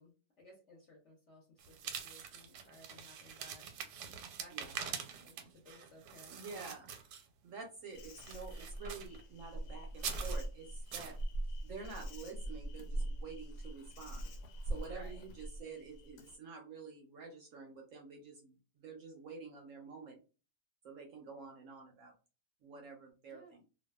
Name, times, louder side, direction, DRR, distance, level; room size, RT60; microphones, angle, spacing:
voice 1, 0.0-4.0 4.4-6.7 14.8-15.2 23.3-23.5, left 1 dB, 55° left, -3 dB, 0.9 m, -59 dB
sound 1, 1.6-7.5 8.0-9.2 9.9-10.4 10.9-11.2, right 7 dB, 85° right, 1.2 m, -45 dB
voice 2, 6.3-6.9 7.4-11.2 11.6-14.2 14.7-20.2 20.8-22.1 22.6-23.6, right 4 dB, 65° right, 1 dB, 0.8 m, -49 dB
Insect, 7.9-16.4, right 1 dB, 75° left, 1.1 m, -42 dB
2.6 x 2.2 x 2.2 m, 0.33 s
omnidirectional pair, 1.7 m